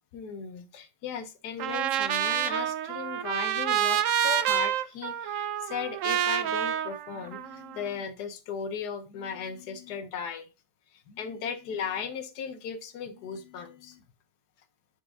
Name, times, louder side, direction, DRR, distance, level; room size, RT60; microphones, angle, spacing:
voice 1, 0.1-10.5 10.9-14.0, left 6 dB, 75° left, 1.4 m, -37 dB
Trumpet, 1.6-7.8, right 10 dB, 70° right, 0.8 m, -28 dB
8.2 x 4.5 x 2.6 m
omnidirectional pair, 1.8 m